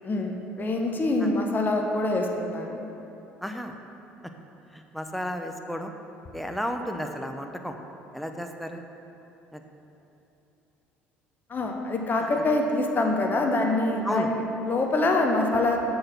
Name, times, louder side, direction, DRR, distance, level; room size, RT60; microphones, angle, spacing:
voice 1, 0.0-2.8 11.5-15.8, left 2 dB, 30° left, 2 dB, 0.9 m, -25 dB
voice 2, 3.4-3.8 4.7-5.9 6.3-7.8 8.1-8.8 9.5-9.6 12.2-12.3 14.0-14.3, equal, ahead, 4 dB, 0.6 m, -33 dB
6.4 x 4.7 x 6.0 m, 3.0 s
hypercardioid pair, 60°, 6 cm